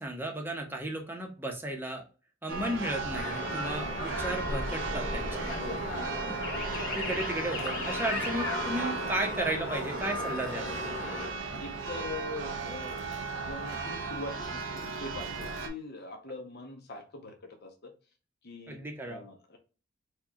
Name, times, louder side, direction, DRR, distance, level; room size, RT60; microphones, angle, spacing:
voice 1, 0.0-2.0 2.4-5.5 6.2-6.4 6.9-10.7 18.7-19.2, right 1 dB, 10° right, 1 dB, 0.8 m, -34 dB
Church bell, 2.5-15.7, right 3 dB, 65° right, 0.7 m, -36 dB
sound 1, 3.1-11.3, left 2 dB, 75° left, 2.0 m, -37 dB
voice 2, 5.5-6.1 11.6-13.0 13.4-17.9 18.4-18.8 19.1-19.6, left 2 dB, 55° left, 4 dB, 0.8 m, -42 dB
4.5 x 2.3 x 2.8 m, 0.35 s
head